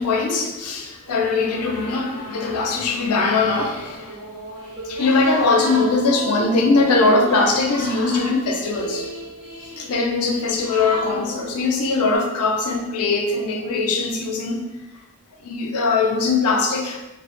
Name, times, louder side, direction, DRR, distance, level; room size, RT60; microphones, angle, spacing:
voice 1, 0.0-4.2 4.8-9.1 9.6-14.6 15.4-17.0, left 3 dB, 85° left, 2 dB, 0.4 m, -21 dB
sound 1, 1.0-2.8 3.0-3.1 3.5-12.2, equal, 90° right, 0.9 m, -36 dB
sound 2, 4.8-5.9 6.8-7.9 8.8-9.9 10.8-11.9, right 4 dB, 25° right, 0.9 m, -38 dB
2.1 x 2.0 x 2.9 m, 1.1 s
head